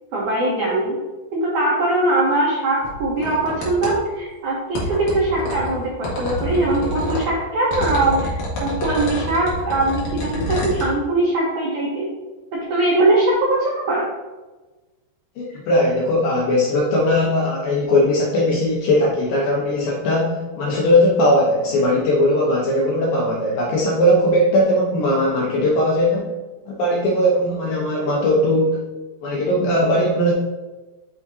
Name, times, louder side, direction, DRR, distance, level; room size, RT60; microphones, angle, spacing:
voice 1, 0.1-1.0 1.3-12.1 12.5-14.0, right 2 dB, 75° right, -5 dB, 1.8 m, -21 dB
sound 1, 2.8-4.0 4.7-7.3 7.7-10.9, left 1 dB, 55° left, 2.4 m, -27 dB
voice 2, 15.4-26.3 26.7-28.8 29.2-30.3, left 1 dB, 75° left, -3 dB, 2.2 m, -19 dB
6.5 x 6.1 x 2.7 m, 1.2 s
omnidirectional pair, 5.1 m